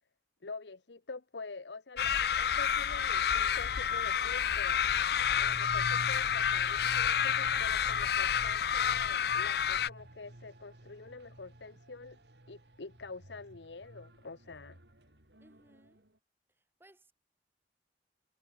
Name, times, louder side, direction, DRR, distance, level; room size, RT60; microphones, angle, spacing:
voice 1, 0.4-4.8 5.3-12.2 12.5-14.8, left 3 dB, 85° left, 1.0 m, -46 dB
sound 1, 2.0-9.9, left 8 dB, 65° left, 0.4 m, -29 dB
sound 2, 4.7-14.1 14.4-14.5, right 1 dB, 50° right, 1.7 m, -48 dB
sound 3, 10.0-16.2, right 1 dB, 80° right, 5.8 m, -61 dB
voice 2, 15.4-16.0 16.8-17.1, right 1 dB, 15° right, 2.9 m, -62 dB
head